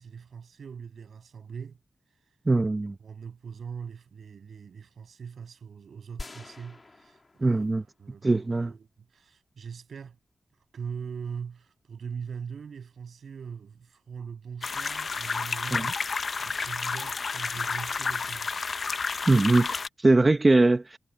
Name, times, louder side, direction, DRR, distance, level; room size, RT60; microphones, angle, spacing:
voice 1, 0.0-1.8 2.8-7.7 8.0-10.2 10.7-16.0 16.4-18.5, right 6 dB, 85° right, 7.2 m, -41 dB
voice 2, 2.5-2.9 7.4-7.8 8.2-8.7 15.7-15.9 19.3-21.0, right 2 dB, 30° right, 1.0 m, -21 dB
sound 1, 6.2-8.1 8.5-8.6, left 3 dB, 35° left, 2.3 m, -45 dB
sound 2, 14.6-19.9, left 5 dB, 60° left, 0.5 m, -31 dB
wide cardioid pair, 110°, 0 cm